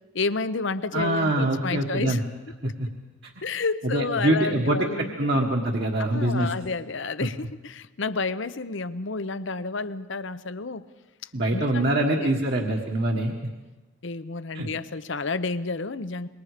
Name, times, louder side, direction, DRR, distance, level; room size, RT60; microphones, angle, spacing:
voice 1, 0.1-2.2 3.4-5.4 6.0-10.8 11.5-12.3 14.0-16.3, left 4 dB, 60° left, 14 dB, 0.8 m, -30 dB
voice 2, 0.9-2.2 2.6-2.9 3.9-6.5 11.3-13.3 14.5-14.7, right 1 dB, 50° right, 0 dB, 1.6 m, -24 dB
26.5 x 22.0 x 5.1 m, 1.2 s
head